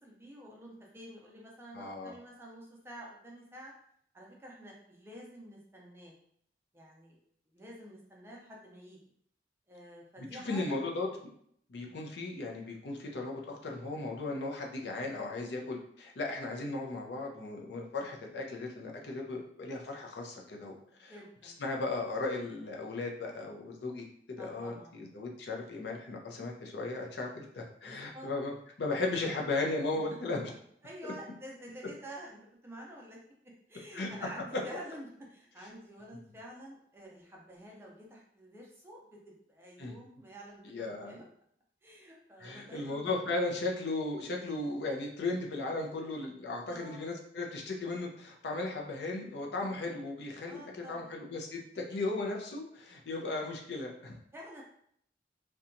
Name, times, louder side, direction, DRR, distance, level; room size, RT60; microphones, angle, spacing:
voice 1, 0.0-3.7 4.1-6.1 6.7-7.2 7.5-9.0 9.7-10.9 11.7-12.0 21.0-21.6 24.4-24.9 27.8-28.3 29.9-30.2 30.8-33.2 33.7-41.2 41.8-43.1 46.7-47.1 50.4-51.1 54.3-54.6, right 1 dB, 15° right, -2 dB, 0.4 m, -49 dB
voice 2, 1.7-2.1 10.2-11.1 11.7-21.1 21.4-30.4 33.9-34.1 34.5-34.6 39.8-40.0 40.6-41.1 42.4-54.2, left 2 dB, 75° left, 0 dB, 0.5 m, -36 dB
2.7 x 2.2 x 2.5 m, 0.68 s
head